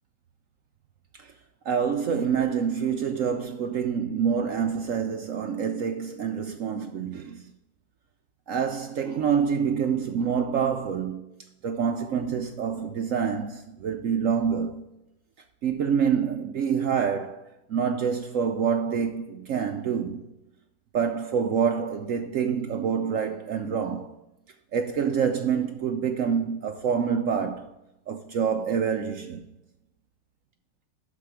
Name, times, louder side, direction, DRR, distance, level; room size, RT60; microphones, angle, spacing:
voice 1, 1.6-7.5 8.5-11.3 11.6-14.8 15.6-17.4 17.7-20.3 20.9-24.1 24.7-27.7 28.1-29.4, right 7 dB, 65° right, 0.8 m, -27 dB
11.5 x 4.5 x 5.0 m
omnidirectional pair, 1.9 m